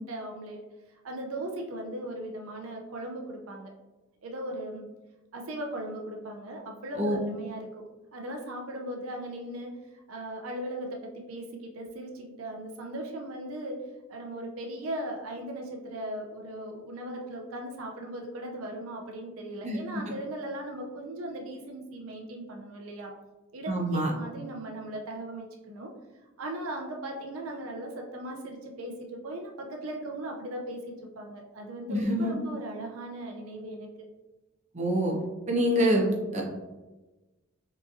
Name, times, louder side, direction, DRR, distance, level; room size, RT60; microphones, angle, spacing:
voice 1, 0.1-0.6 1.0-3.7 4.2-4.9 5.3-13.8 14.1-23.1 23.5-25.9 26.4-33.9, right 1 dB, 85° right, 2 dB, 0.5 m, -38 dB
voice 2, 23.7-24.1 31.9-32.4 34.7-35.2 35.5-36.4, equal, 35° right, -1 dB, 0.8 m, -25 dB
4.8 x 3.0 x 2.5 m, 1.1 s
head